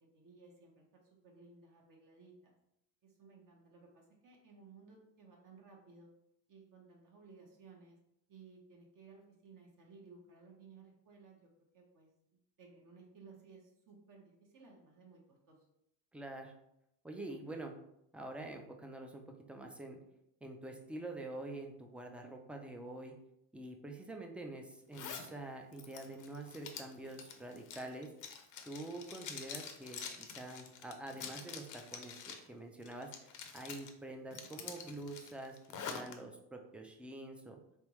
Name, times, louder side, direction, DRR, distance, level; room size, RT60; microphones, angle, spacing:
voice 1, 0.1-2.6 3.0-6.1 6.5-8.0 8.3-12.1 12.6-15.6, right 4 dB, 50° right, -1 dB, 1.0 m, -59 dB
voice 2, 16.1-16.5 17.0-17.7 18.1-20.0 20.4-23.1 23.5-28.1 28.7-37.6, right 2 dB, 5° right, 3 dB, 0.4 m, -46 dB
Zipper (clothing), 24.9-25.3 25.7-32.5 32.8-33.9 34.3-36.1, left 6 dB, 45° left, 0.6 m, -47 dB
3.5 x 3.4 x 3.0 m, 0.80 s
cardioid pair, 110°, 43 cm